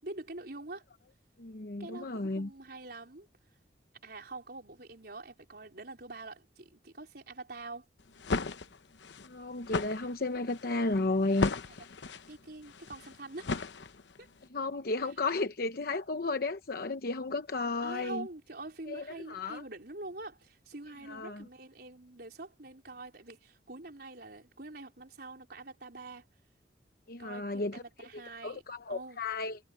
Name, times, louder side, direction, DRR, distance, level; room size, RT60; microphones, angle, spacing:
voice 1, 0.0-0.8 1.8-3.3 4.0-7.9 12.3-13.5 14.2-14.3 17.8-26.3 27.2-28.6 28.9-29.2, right 2 dB, 60° right, 4.5 m, -45 dB
voice 2, 1.4-2.5 9.2-11.8 14.5-18.3 18.9-19.6 21.1-21.4 27.1-27.8 28.4-29.6, left 3 dB, 55° left, 0.9 m, -33 dB
sound 1, 8.0-14.3, left 3 dB, 85° left, 0.9 m, -36 dB
head